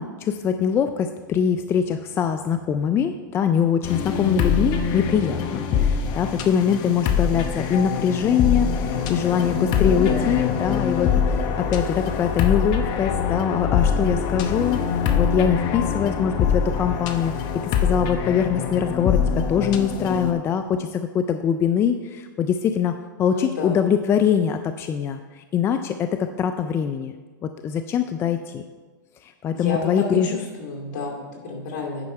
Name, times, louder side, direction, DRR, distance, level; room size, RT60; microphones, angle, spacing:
voice 1, 0.0-26.1 26.4-27.1 27.4-28.6 29.2-30.4, left 8 dB, 20° left, 8 dB, 0.3 m, -23 dB
sound 1, 3.8-20.3, left 6 dB, 40° left, 0.8 m, -24 dB
voice 2, 9.8-10.3 23.3-23.8 29.5-32.1, left 3 dB, 60° left, 0 dB, 2.4 m, -31 dB
9.7 x 5.7 x 4.3 m, 1.4 s
hypercardioid pair, 130°, 11 cm